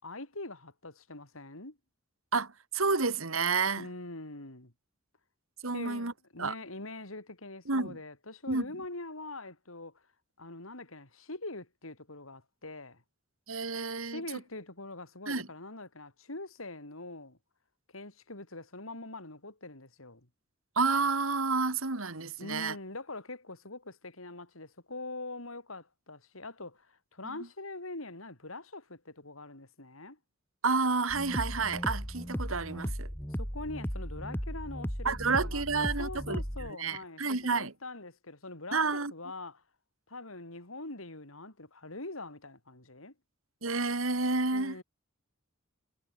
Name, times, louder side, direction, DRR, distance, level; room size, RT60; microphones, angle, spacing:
voice 1, 0.0-1.8 3.8-4.7 5.7-10.0 10.4-13.0 14.0-17.4 17.9-20.3 22.4-30.2 33.3-39.6 40.1-43.1 44.5-44.8, left 2 dB, 85° left, 5.4 m, -43 dB
voice 2, 2.3-3.9 5.6-6.1 6.4-6.5 7.7-8.0 8.5-8.7 13.5-14.2 15.3-15.5 20.8-22.8 27.2-27.4 30.6-33.1 35.0-37.7 38.7-39.1 43.6-44.8, right 4 dB, 85° right, 2.4 m, -30 dB
sound 1, 31.1-36.7, equal, 10° left, 6.5 m, -36 dB
head